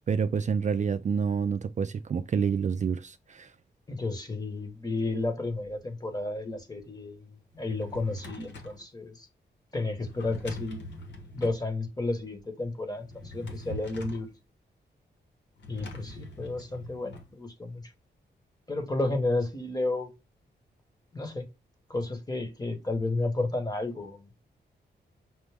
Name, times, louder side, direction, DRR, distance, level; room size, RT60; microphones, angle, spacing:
voice 1, 0.1-3.5, right 6 dB, 40° right, 0.4 m, -28 dB
voice 2, 3.9-9.3 9.7-10.9 11.3-14.3 15.7-17.8 18.7-20.1 21.1-21.4 21.9-24.3, left 2 dB, 20° left, 1.2 m, -32 dB
Drawer open or close, 7.5-8.8 10.0-11.6 13.0-14.3 15.6-17.3, left 1 dB, 80° left, 1.1 m, -43 dB
6.0 x 2.1 x 3.3 m
cardioid pair, 75°, 18 cm